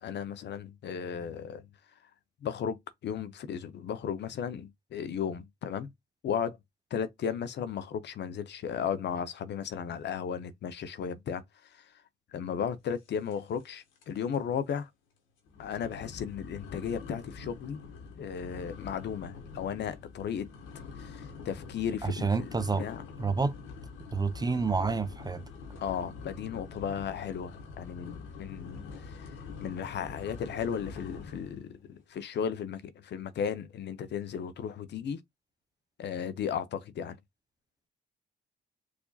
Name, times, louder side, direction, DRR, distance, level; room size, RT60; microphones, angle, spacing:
voice 1, 0.0-1.6 2.4-2.8 3.0-5.9 6.2-6.6 6.9-11.4 11.7-11.9 12.3-14.9 15.6-17.8 18.2-20.5 21.0-23.0 25.8-29.3 29.6-35.2 36.0-37.2, left 7 dB, 60° left, 0.7 m, -35 dB
sound 1, 13.3-13.7 14.0-14.4 14.8-14.9 15.5-31.6, left 5 dB, 90° left, 1.7 m, -45 dB
voice 2, 22.0-22.9 23.2-23.5 24.1-25.4, right 4 dB, 20° right, 0.5 m, -29 dB
4.8 x 2.7 x 2.3 m
cardioid pair, 90°, 20 cm